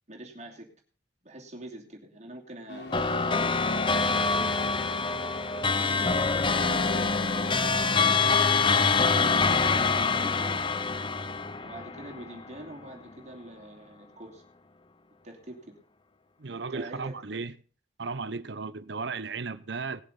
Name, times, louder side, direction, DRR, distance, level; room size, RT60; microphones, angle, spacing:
voice 1, 0.1-0.7 1.2-5.0 5.8-8.4 9.3-10.6 11.6-14.4 15.2-15.7 16.7-17.1, right 1 dB, 40° right, 2.8 m, -44 dB
sound 1, 2.7-9.4, left 3 dB, 60° left, 1.4 m, -39 dB
sound 2, 2.9-12.6, left 4 dB, 25° left, 0.7 m, -25 dB
voice 2, 16.4-17.5 18.0-20.0, right 4 dB, 65° right, 0.8 m, -35 dB
18.5 x 7.4 x 5.3 m
head